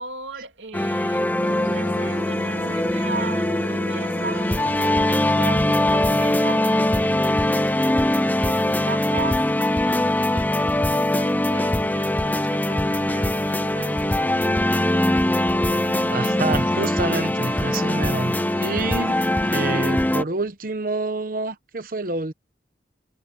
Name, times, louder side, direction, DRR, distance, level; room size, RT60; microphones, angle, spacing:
voice 1, 0.0-8.1 8.3-14.4 19.7-19.9, right 4 dB, 85° right, 2.8 m, -37 dB
sound 1, 0.7-20.2, left 1 dB, 10° left, 0.5 m, -22 dB
sound 2, 1.3-19.7, right 2 dB, 70° right, 1.5 m, -41 dB
voice 2, 16.1-19.2 19.5-22.3, right 3 dB, 50° right, 1.0 m, -27 dB
head